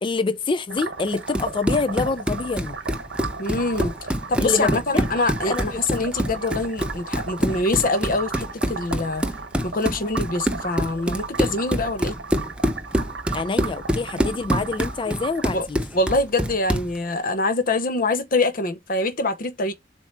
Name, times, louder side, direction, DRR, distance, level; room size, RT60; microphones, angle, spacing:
voice 1, 0.0-2.8 4.4-5.1 5.5-5.8 10.0-10.1 13.3-15.8, left 4 dB, 30° left, 0.4 m, -26 dB
sound 1, 0.7-15.5, right 4 dB, 70° right, 1.2 m, -35 dB
Run, 1.1-17.0, equal, 5° right, 0.7 m, -26 dB
voice 2, 3.4-3.9 4.3-9.2 9.6-12.2 15.1-15.2 15.5-15.7 15.9-19.7, left 2 dB, 50° left, 0.9 m, -24 dB
7.4 x 2.8 x 4.5 m
head